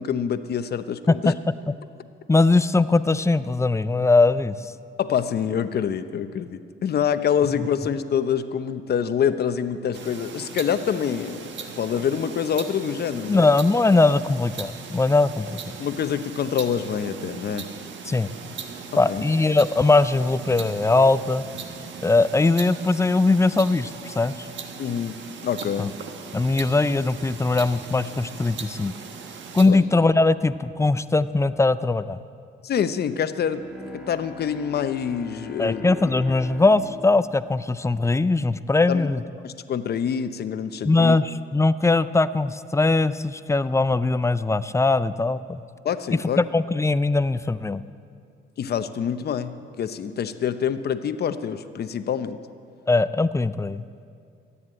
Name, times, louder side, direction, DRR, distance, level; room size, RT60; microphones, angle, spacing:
voice 1, 0.0-1.3 5.0-11.4 11.8-13.5 15.8-17.6 19.1-19.2 24.8-25.9 29.7-29.8 32.6-33.6 33.9-36.1 38.9-39.1 39.4-41.1 45.8-46.4 48.6-52.4, left 8 dB, 55° left, 11 dB, 0.8 m, -26 dB
voice 2, 2.3-4.7 13.3-15.8 18.1-18.3 19.0-21.4 22.0-24.5 25.8-25.9 26.3-28.9 29.5-32.2 35.6-39.2 40.8-45.6 46.1-47.8 52.9-53.8, left 3 dB, 15° left, 14 dB, 0.4 m, -20 dB
sound 1, 9.9-29.7, right 6 dB, 70° right, 1.4 m, -39 dB
Bowed string instrument, 33.4-38.6, left 4 dB, 5° right, 2.7 m, -41 dB
14.0 x 9.7 x 8.8 m, 2.3 s
cardioid pair, 90°, 20 cm